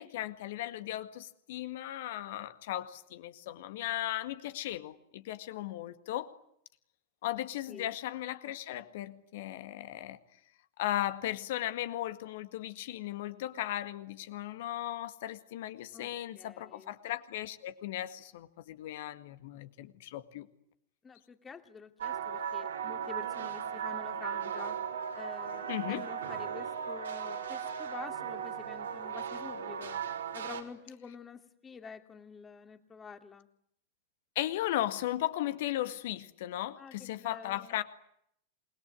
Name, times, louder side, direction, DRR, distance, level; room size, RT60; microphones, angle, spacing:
voice 1, 0.0-6.3 7.2-10.2 10.8-20.5 25.7-26.1 34.4-37.8, left 13 dB, 55° left, 11 dB, 1.9 m, -36 dB
voice 2, 15.9-17.0 21.0-24.8 25.1-30.0 30.3-33.5 36.8-37.7, left 6 dB, 20° left, 7 dB, 2.6 m, -48 dB
sound 1, 22.0-30.6, right 7 dB, 70° right, 4.0 m, -37 dB
28.0 x 21.5 x 9.7 m, 0.73 s
figure-of-eight pair, 90°, 0 cm